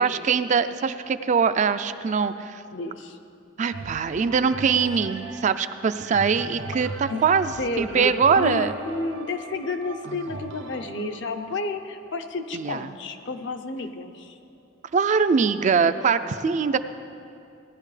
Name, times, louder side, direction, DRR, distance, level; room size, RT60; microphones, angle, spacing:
voice 1, 0.0-2.6 3.6-8.7 12.5-12.9 14.9-16.8, right 5 dB, 40° right, 11 dB, 0.3 m, -22 dB
voice 2, 2.7-3.2 7.1-7.2 7.6-14.4 16.6-16.8, left 2 dB, 70° left, 7 dB, 0.7 m, -31 dB
sound 1, 3.7-13.5 14.2-14.3, right 3 dB, 80° right, 0.7 m, -39 dB
18.0 x 10.5 x 3.3 m, 2.6 s
head